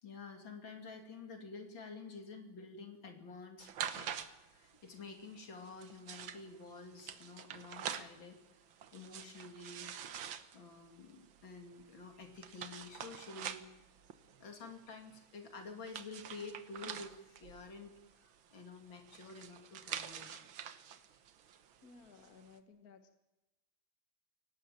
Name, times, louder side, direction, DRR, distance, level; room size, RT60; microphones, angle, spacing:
voice 1, 0.0-4.1 4.5-8.4 8.9-10.0 10.5-13.6 14.4-20.4, left 4 dB, 75° left, 5 dB, 3.3 m, -50 dB
sound 1, 3.6-22.5, right 8 dB, 80° right, 1.9 m, -47 dB
voice 2, 21.8-23.1, left 4 dB, 50° left, 7 dB, 1.8 m, -58 dB
23.5 x 18.0 x 9.1 m, 1.0 s
omnidirectional pair, 2.1 m